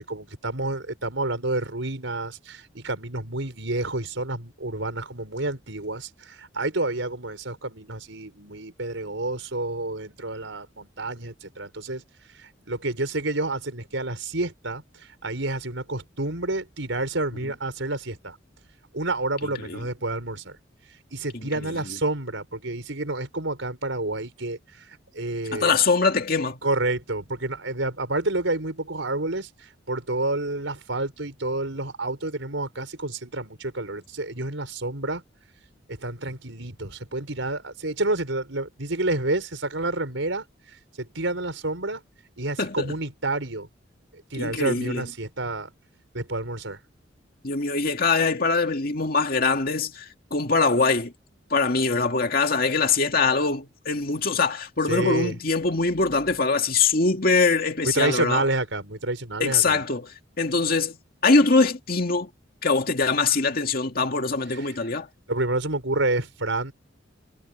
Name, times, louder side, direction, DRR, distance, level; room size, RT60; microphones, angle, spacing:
voice 1, 0.0-12.0 12.4-18.4 18.9-20.6 21.1-24.6 25.1-25.7 26.6-35.2 35.9-40.4 41.0-42.0 42.4-43.7 44.1-45.7 46.1-46.8 54.9-55.4 57.8-59.8 64.5-64.7 65.3-66.7, right 2 dB, 80° right, 4.8 m, -29 dB
voice 2, 21.3-21.9 25.5-26.6 42.6-42.9 44.3-45.1 47.4-51.1 51.5-58.4 59.4-61.0 61.2-62.3 62.6-65.1, left 4 dB, 50° left, 2.3 m, -23 dB
head